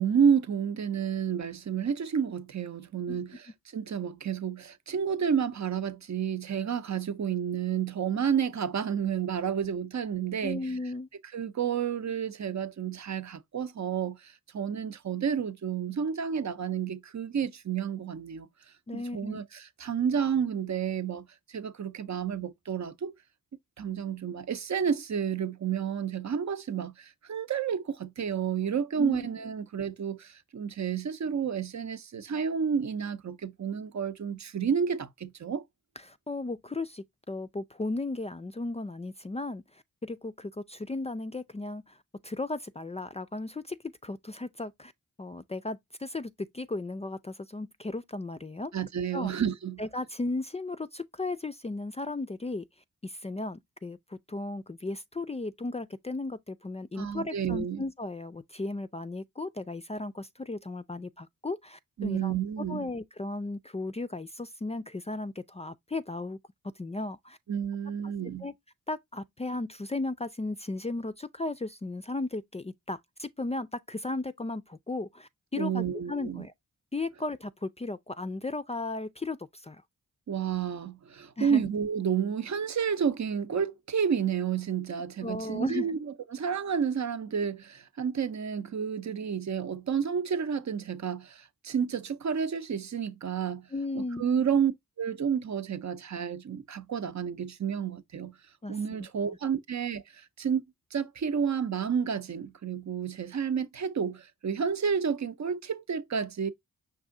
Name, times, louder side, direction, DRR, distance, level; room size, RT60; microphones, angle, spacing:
voice 1, 0.0-10.7 11.3-18.5 18.9-23.1 23.8-35.6 48.7-49.8 57.0-57.8 62.0-62.9 67.5-68.5 75.5-76.5 80.3-93.7 93.9-94.7 95.0-98.3 98.7-100.6 100.9-106.5, right 7 dB, 55° right, 0.7 m, -30 dB
voice 2, 10.4-11.1 18.9-19.4 29.0-29.3 36.1-42.0 42.2-44.9 45.2-48.7 49.1-49.3 49.8-52.6 53.0-66.4 66.8-67.4 68.4-68.5 68.9-76.5 76.9-79.8 81.4-81.6 85.2-85.9 93.7-94.3 98.6-99.1, left 2 dB, 20° left, 0.4 m, -35 dB
5.4 x 2.6 x 3.7 m
cardioid pair, 45°, 35 cm